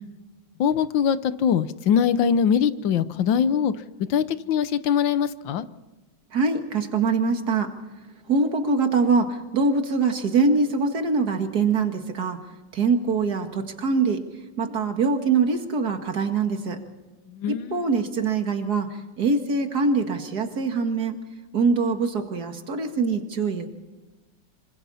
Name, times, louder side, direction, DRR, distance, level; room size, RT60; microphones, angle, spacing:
voice 1, 0.6-3.7 4.1-5.6 17.3-17.9, left 8 dB, 90° left, 13 dB, 1.6 m, -22 dB
voice 2, 6.3-7.7 8.3-12.4 12.7-14.2 14.6-16.8 17.5-18.9 19.2-21.2 21.5-23.7, right 4 dB, 60° right, 5 dB, 2.4 m, -23 dB
27.0 x 25.0 x 4.2 m, 1.2 s
omnidirectional pair, 2.0 m